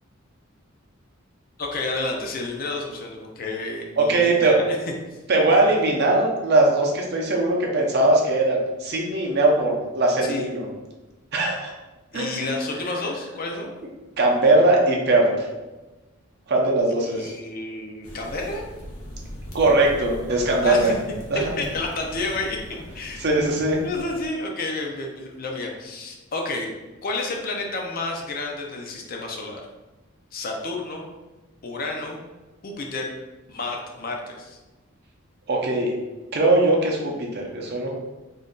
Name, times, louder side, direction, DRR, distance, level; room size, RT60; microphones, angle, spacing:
voice 1, 1.6-4.8 10.2-10.5 12.1-13.7 17.1-18.6 20.6-20.9 21.3-22.6 22.9-23.3 23.8-26.7 27.0-29.6 30.3-31.1 31.6-32.2 32.6-33.1 33.5-34.6, left 2 dB, 45° left, 1 dB, 0.4 m, -30 dB
voice 2, 4.0-4.6 5.3-10.7 11.3-11.7 12.1-12.5 14.2-15.5 16.5-17.3 19.5-20.9 21.3-21.4 23.2-23.8 35.5-35.9 36.3-37.9, right 2 dB, 50° right, -1 dB, 0.6 m, -20 dB
sound 1, 18.0-24.3, equal, 90° left, 0.8 m, -40 dB
2.5 x 2.2 x 3.7 m, 1.1 s
head